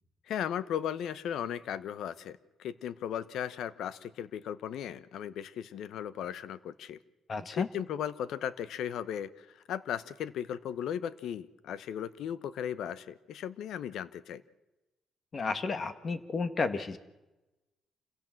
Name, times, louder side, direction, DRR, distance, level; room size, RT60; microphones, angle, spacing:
voice 1, 0.3-7.0 7.5-14.4, left 9 dB, 75° left, 17 dB, 0.9 m, -36 dB
voice 2, 7.3-7.7 15.3-17.0, left 4 dB, 40° left, 11 dB, 1.7 m, -32 dB
27.0 x 16.5 x 7.7 m, 1.1 s
cardioid pair, 90°, 0 cm